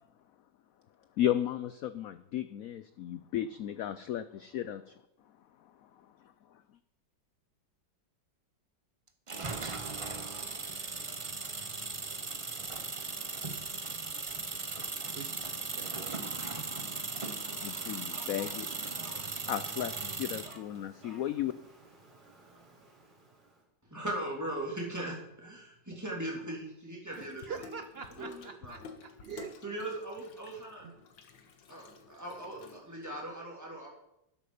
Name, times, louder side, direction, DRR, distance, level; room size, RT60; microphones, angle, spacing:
voice 1, 1.2-4.8 17.6-18.7 19.5-21.5, left 11 dB, 70° left, 12 dB, 0.8 m, -34 dB
sound 1, 9.3-20.6, right 4 dB, 30° right, 0.5 m, -38 dB
voice 2, 15.6-16.2 27.2-29.5 30.8-30.9, right 6 dB, 75° right, 9 dB, 0.5 m, -45 dB
Fowl, 17.2-23.6, right 1 dB, 60° right, 3.6 m, -55 dB
voice 3, 23.9-27.6 28.2-28.8 29.6-30.9 31.7-33.9, right 1 dB, 10° right, -3 dB, 3.2 m, -39 dB
Water tap faucet / Sink (filling or washing), 27.1-33.2, left 5 dB, 85° left, 2.0 m, -52 dB
12.5 x 11.0 x 5.1 m, 0.85 s
omnidirectional pair, 2.0 m